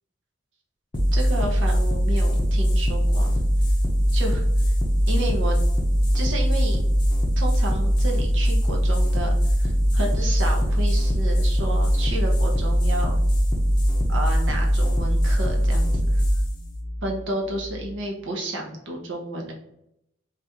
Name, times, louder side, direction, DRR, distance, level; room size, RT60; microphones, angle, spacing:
sound 1, 0.9-18.0, equal, 25° left, 0.5 m, -21 dB
voice 1, 1.1-3.4 4.1-4.4 5.1-5.6 6.1-6.8 7.4-9.3 9.6-13.2 14.1-16.2 17.0-19.5, right 1 dB, 75° right, 0 dB, 0.7 m, -31 dB
2.8 x 2.4 x 3.4 m, 0.78 s
head